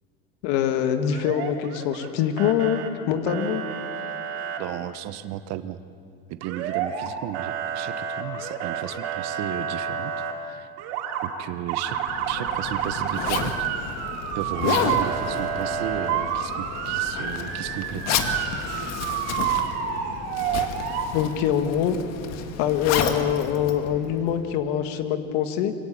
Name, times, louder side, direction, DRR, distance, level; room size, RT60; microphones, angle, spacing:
voice 1, 0.4-2.8 3.1-3.6 21.1-22.0 22.6-25.7, left 9 dB, 70° left, 8 dB, 2.0 m, -24 dB
Motor vehicle (road) / Siren, 1.1-2.1 2.4-2.9 3.3-4.6 6.4-7.1 7.3-10.3 10.8-11.3 11.7-21.0, right 8 dB, 80° right, 3.4 m, -29 dB
voice 2, 4.6-5.8 6.3-10.7 11.2-12.0 12.3-13.9 14.3-18.2, right 11 dB, 55° right, 12 dB, 1.1 m, -34 dB
Zipper (clothing), 11.9-24.6, left 7 dB, 50° left, 1.9 m, -31 dB
25.0 x 17.0 x 8.7 m, 2.4 s
supercardioid pair, 125°, 32 cm